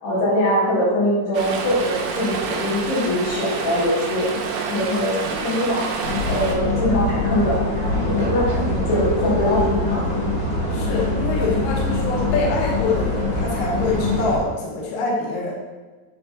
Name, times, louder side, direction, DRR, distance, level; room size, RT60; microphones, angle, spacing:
voice 1, 0.0-4.3 4.7-5.9 6.3-7.6 8.0-10.2, left 1 dB, 85° left, -8 dB, 4.2 m, -22 dB
Stream, 1.3-6.6, right 5 dB, 80° right, 2.1 m, -28 dB
sound 1, 6.0-14.4, left 3 dB, 45° left, 1.0 m, -24 dB
sound 2, 6.4-14.5, right 9 dB, 65° right, 2.0 m, -32 dB
voice 2, 10.7-15.5, left 3 dB, 70° left, -3 dB, 1.9 m, -25 dB
8.3 x 4.2 x 2.7 m, 1.3 s
omnidirectional pair, 4.7 m